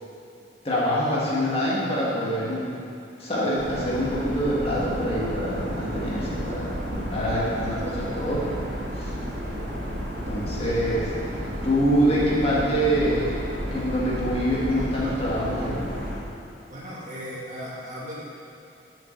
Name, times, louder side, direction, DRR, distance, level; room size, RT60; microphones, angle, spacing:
voice 1, 0.6-2.6 3.2-8.6 8.9-9.1 10.3-11.1 11.6-13.4 13.7-15.8, equal, 30° left, -6 dB, 1.8 m, -25 dB
sound 1, 3.6-16.2, equal, 85° right, 2.1 m, -32 dB
voice 2, 16.7-18.2, equal, 40° right, -7 dB, 2.1 m, -36 dB
7.1 x 5.9 x 7.7 m, 2.7 s
head